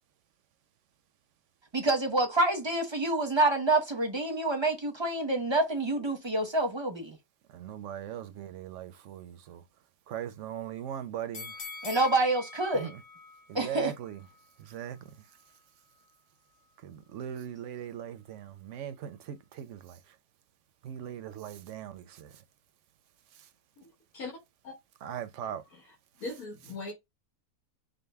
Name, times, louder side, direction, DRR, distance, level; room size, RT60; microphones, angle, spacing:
voice 1, 1.7-7.2 11.8-12.9 13.5-13.9, right 2 dB, 25° right, 0.7 m, -27 dB
voice 2, 7.5-9.6 10.1-11.5 12.8-12.9 13.5-14.2 14.6-15.0 16.8-20.0 20.8-22.3 25.0-25.6, right 10 dB, 65° right, 0.8 m, -39 dB
sound 1, 11.3-14.4 14.9-15.0, left 4 dB, 50° left, 0.7 m, -44 dB
voice 3, 23.8-24.4 24.6-24.7 25.4-26.9, left 3 dB, 80° left, 1.7 m, -42 dB
5.1 x 2.2 x 3.4 m
omnidirectional pair, 1.5 m